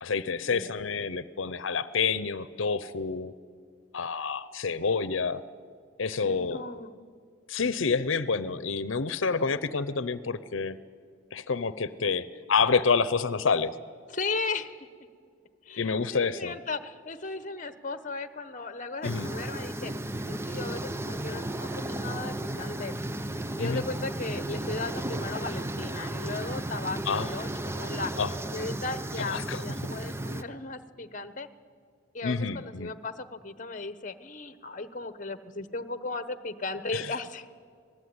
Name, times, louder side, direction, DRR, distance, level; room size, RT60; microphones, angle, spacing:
voice 1, 0.0-3.3 3.9-5.4 6.0-6.6 7.5-10.8 11.3-13.7 15.8-16.6 19.0-19.3 23.6-23.8 27.1-27.3 28.2-28.3 29.3-29.6 32.2-32.9 36.9-37.1, left 5 dB, 85° left, 15 dB, 0.8 m, -28 dB
voice 2, 6.2-6.9 14.1-14.7 15.6-19.9 20.3-22.9 23.6-28.1 28.5-31.5 32.1-37.5, left 3 dB, 40° left, 13 dB, 1.1 m, -36 dB
sound 1, 19.0-30.4, right 1 dB, 15° right, 0.7 m, -34 dB
26.5 x 19.0 x 9.7 m, 2.2 s
head